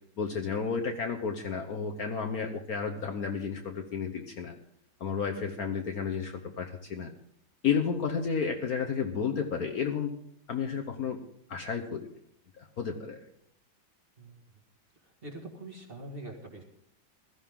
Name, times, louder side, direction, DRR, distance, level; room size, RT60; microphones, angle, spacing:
voice 1, 0.2-4.5 5.0-7.1 7.6-10.1 10.5-11.2 11.5-12.1 12.6-13.2, left 6 dB, 55° left, 3 dB, 1.3 m, -32 dB
voice 2, 15.0-16.6, right 1 dB, 30° right, 0 dB, 2.0 m, -44 dB
16.0 x 13.0 x 3.7 m, 0.70 s
omnidirectional pair, 2.1 m